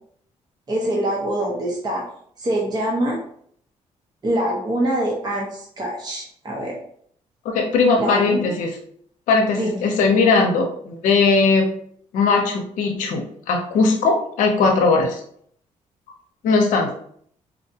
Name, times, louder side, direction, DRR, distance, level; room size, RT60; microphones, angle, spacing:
voice 1, 0.7-2.1 2.4-3.2 4.2-6.8 8.0-8.6 9.5-9.9, right 1 dB, 30° right, -2 dB, 0.9 m, -24 dB
voice 2, 7.5-8.7 9.3-11.7 12.1-15.2 16.4-16.9, left 4 dB, 90° left, 2 dB, 0.6 m, -19 dB
4.1 x 2.2 x 2.7 m, 0.62 s
cardioid pair, 75°, 13 cm